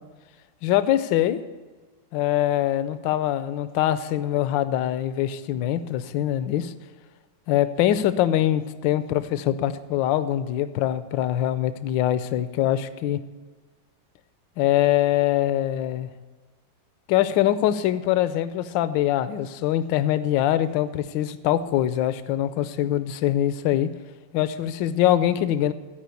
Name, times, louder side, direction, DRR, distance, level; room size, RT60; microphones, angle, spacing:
voice 1, 0.6-1.4 2.1-6.7 7.5-13.2 14.6-16.1 17.1-23.9 24.3-25.7, left 12 dB, 80° left, 13 dB, 1.3 m, -23 dB
13.5 x 5.0 x 8.3 m, 1.3 s
omnidirectional pair, 2.0 m